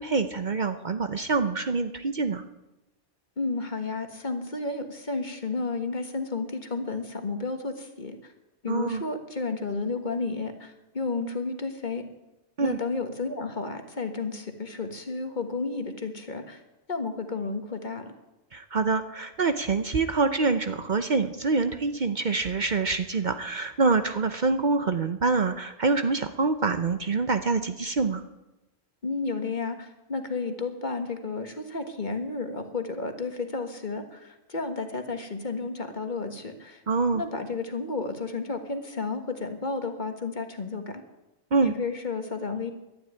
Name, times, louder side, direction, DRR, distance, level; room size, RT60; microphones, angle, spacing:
voice 1, 0.0-2.4 8.7-9.0 12.6-12.8 18.5-28.2 36.9-37.2 41.5-41.7, right 4 dB, 45° right, 9 dB, 0.8 m, -25 dB
voice 2, 3.4-8.3 8.6-12.0 12.6-16.6 16.9-18.1 29.0-36.8 37.1-41.0 41.6-42.7, left 3 dB, 45° left, 6 dB, 1.6 m, -32 dB
12.0 x 11.0 x 9.6 m, 1.0 s
omnidirectional pair, 1.1 m